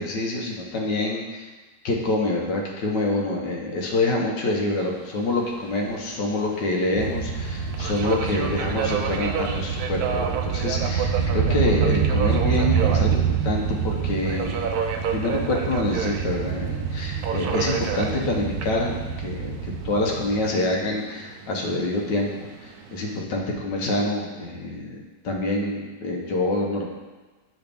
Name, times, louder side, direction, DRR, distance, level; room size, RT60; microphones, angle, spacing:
voice 1, 0.0-1.5 1.8-14.7 15.1-25.0 25.2-26.9, left 2 dB, 75° left, -1 dB, 1.6 m, -26 dB
Subway metro underground, 4.7-23.2, right 7 dB, 70° right, 0.9 m, -33 dB
sound 1, 7.0-20.8, right 6 dB, 85° right, 1.3 m, -27 dB
6.7 x 5.3 x 3.5 m, 1.2 s
omnidirectional pair, 1.9 m